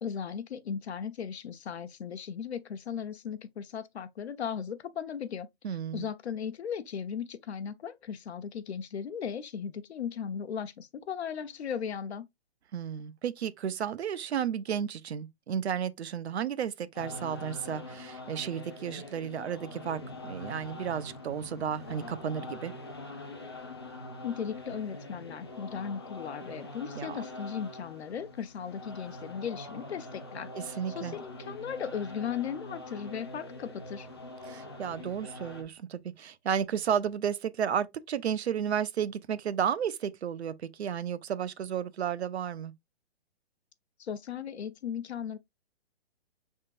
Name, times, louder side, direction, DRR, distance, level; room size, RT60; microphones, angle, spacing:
voice 1, 0.0-5.5 5.9-12.3 24.2-34.1 44.0-45.4, left 7 dB, 80° left, 0.7 m, -37 dB
voice 2, 5.6-6.1 12.7-22.7 27.0-27.2 30.5-31.2 34.4-42.7, right 8 dB, 80° right, 0.6 m, -33 dB
sound 1, 16.9-35.6, left 2 dB, 25° left, 0.4 m, -44 dB
5.5 x 3.6 x 2.5 m
hypercardioid pair, 175°, 32 cm